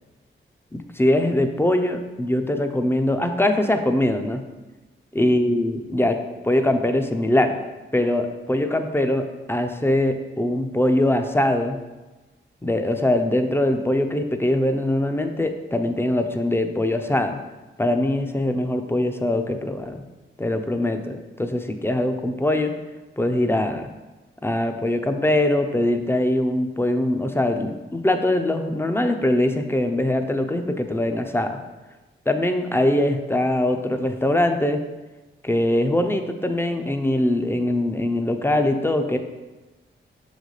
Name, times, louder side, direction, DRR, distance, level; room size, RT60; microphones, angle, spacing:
voice 1, 0.7-4.4 5.1-6.2 6.4-7.5 7.9-11.8 12.6-17.4 17.8-20.0 20.4-22.7 23.2-23.9 24.4-31.6 32.3-34.8 35.4-39.2, left 1 dB, 10° left, 6 dB, 0.6 m, -22 dB
6.1 x 4.0 x 4.9 m, 1.1 s
wide cardioid pair, 80°, 21 cm